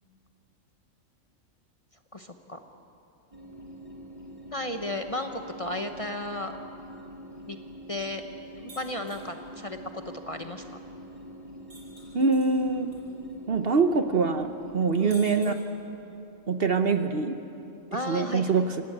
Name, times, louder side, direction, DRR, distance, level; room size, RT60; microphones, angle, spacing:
voice 1, 2.1-2.6 4.5-6.5 7.5-7.6 7.9-8.2 8.6-10.6 15.0-15.3 17.9-18.5, left 1 dB, 25° left, 6 dB, 1.0 m, -34 dB
sound 1, 3.3-15.0, equal, 25° right, 2.6 m, -45 dB
sound 2, 8.7-9.3 11.7-13.0 13.3-13.4 15.1-16.0, right 1 dB, 80° right, 6.6 m, -49 dB
voice 2, 12.1-13.0 13.5-15.5 16.5-17.4 17.9-18.8, right 4 dB, 50° right, 8 dB, 1.0 m, -24 dB
25.5 x 18.5 x 8.7 m, 2.9 s
omnidirectional pair, 1.4 m